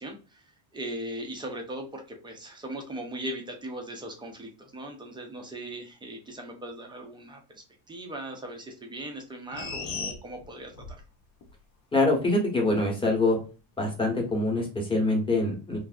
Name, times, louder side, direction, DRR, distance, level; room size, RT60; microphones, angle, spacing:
voice 1, 0.0-11.0, right 1 dB, 10° right, 3 dB, 0.4 m, -39 dB
sound 1, 9.5-11.0 11.4-11.5, left 5 dB, 45° left, 0.8 m, -36 dB
voice 2, 11.9-13.4 13.8-15.8, left 2 dB, 10° left, 0 dB, 0.8 m, -24 dB
3.3 x 2.5 x 2.3 m, 0.34 s
cardioid pair, 160°, 48 cm